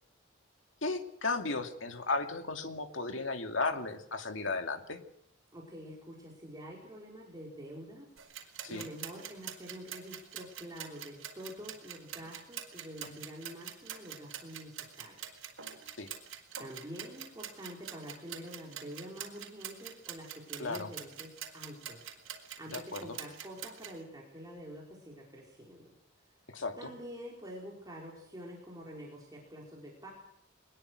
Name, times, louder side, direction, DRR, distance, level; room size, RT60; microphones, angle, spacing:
voice 1, 0.8-5.0 8.7-8.9 13.0-13.2 16.0-16.1 20.6-20.9 22.7-23.2 26.5-26.9, left 3 dB, 65° left, 5 dB, 2.5 m, -35 dB
voice 2, 5.5-8.1 8.7-15.3 16.6-22.1 22.6-25.9 26.2-26.3 26.8-30.1, equal, 20° right, -3 dB, 5.0 m, -47 dB
sound 1, 8.2-24.0, right 9 dB, 85° right, 4.7 m, -45 dB
23.0 x 21.0 x 6.5 m, 0.74 s
head